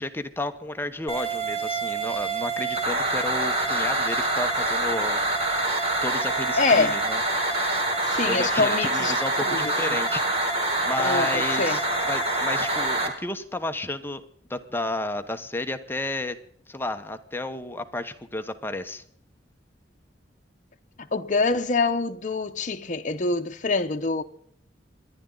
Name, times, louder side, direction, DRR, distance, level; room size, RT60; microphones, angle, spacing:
voice 1, 0.0-5.2 5.6-7.2 8.3-10.2 10.8-11.8 12.1-14.2 14.5-16.4 16.7-19.0, left 2 dB, 10° left, 1.0 m, -32 dB
sound 1, 1.1-13.1, right 2 dB, 35° right, 3.0 m, -26 dB
voice 2, 6.6-7.0 8.1-9.1 9.4-10.0 11.0-11.8 21.0-24.2, left 3 dB, 45° left, 0.9 m, -25 dB
28.5 x 11.0 x 3.9 m
head